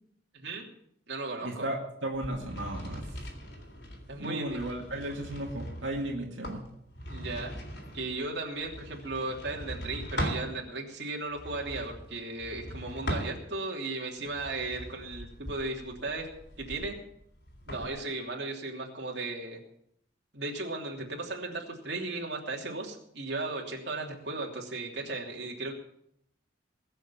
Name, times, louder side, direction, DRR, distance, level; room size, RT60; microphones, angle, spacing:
voice 1, 0.3-0.7 1.1-1.7 4.1-4.6 7.1-7.5 7.9-16.3 16.6-17.0 17.7-19.6 20.3-25.7, right 2 dB, 60° right, -1 dB, 3.1 m, -36 dB
voice 2, 1.4-1.8 2.0-3.0 4.2-6.7, right 1 dB, 90° right, 0 dB, 2.2 m, -35 dB
sound 1, 2.1-10.5 11.3-13.8 14.2-17.9, equal, 60° left, 3.7 m, -40 dB
21.0 x 7.0 x 7.1 m, 0.73 s
head